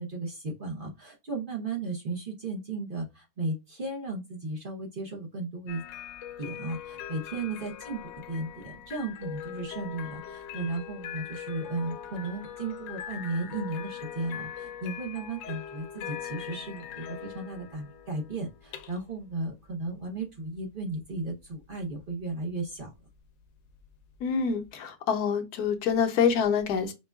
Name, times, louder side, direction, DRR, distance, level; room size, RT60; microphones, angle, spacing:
voice 1, 0.0-5.8 6.4-22.9, right 3 dB, 45° right, 0.7 m, -35 dB
sound 1, 5.7-24.7, left 9 dB, 90° left, 1.2 m, -42 dB
voice 2, 24.2-26.9, left 6 dB, 70° left, 1.1 m, -26 dB
5.2 x 2.2 x 2.3 m
omnidirectional pair, 1.9 m